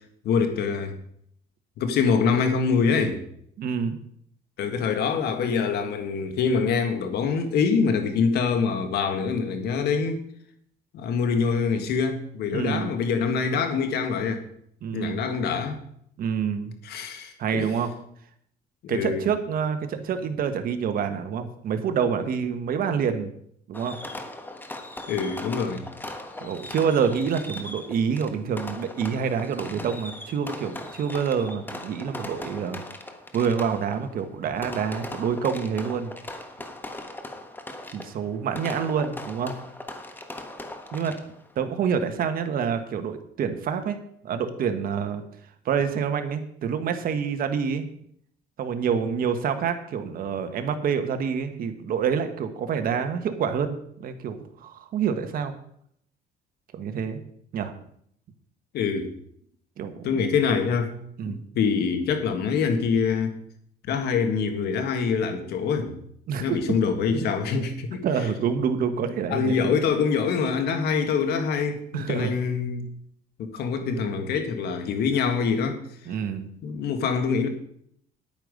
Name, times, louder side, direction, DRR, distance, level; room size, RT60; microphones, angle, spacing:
voice 1, 0.2-1.0 1.8-3.2 4.6-10.2 10.9-14.4 14.9-15.8 16.8-17.7 18.8-19.2 25.1-25.9 58.7-59.1 60.0-60.9 61.2-63.4 63.9-66.0 66.4-68.0 69.3-72.9 73.4-75.8 76.6-77.5, left 5 dB, 70° left, 7 dB, 1.8 m, -25 dB
voice 2, 3.6-4.0 12.5-12.9 14.8-15.3 16.2-16.7 17.4-17.9 18.9-23.3 23.7-24.0 26.4-32.8 33.3-36.1 37.9-39.5 40.9-41.1 41.5-44.0 44.2-45.2 45.6-47.8 48.6-55.5 56.7-57.2 57.5-57.7 59.8-60.3 61.2-61.4 66.3-66.6 67.1-67.3 68.0-69.6 71.9-72.3 76.1-76.5, right 7 dB, 60° right, 8 dB, 1.5 m, -27 dB
Fireworks, 23.7-41.5, left 1 dB, 10° left, 1.4 m, -39 dB
10.5 x 9.0 x 5.3 m, 0.68 s
cardioid pair, 110°, 17 cm